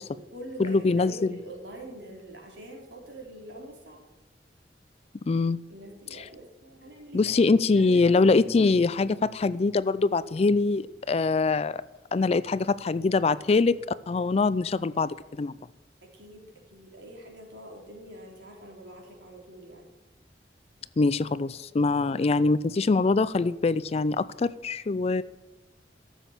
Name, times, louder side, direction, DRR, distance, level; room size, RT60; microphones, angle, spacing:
voice 1, 0.0-4.0 5.7-8.3 16.1-16.5 16.7-19.9, right 1 dB, 80° right, 0 dB, 3.6 m, -45 dB
voice 2, 0.6-1.4 5.3-5.6 6.1-6.3 7.1-11.8 12.1-13.8 14.1-15.6 21.0-25.2, left 3 dB, 35° left, 18 dB, 0.4 m, -23 dB
13.0 x 7.4 x 7.2 m, 1.0 s
head